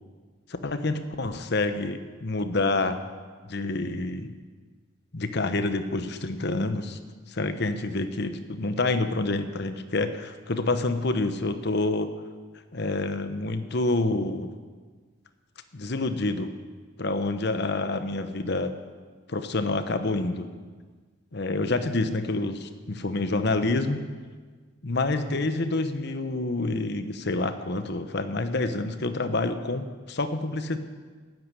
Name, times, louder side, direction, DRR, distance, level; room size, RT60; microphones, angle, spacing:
voice 1, 0.6-3.0 3.4-4.3 5.1-7.0 7.3-12.1 12.7-14.5 15.7-16.5 17.0-18.7 19.3-20.5 21.3-24.0 24.8-30.8, left 2 dB, 55° left, 9 dB, 1.0 m, -27 dB
13.5 x 9.4 x 9.3 m, 1.5 s
head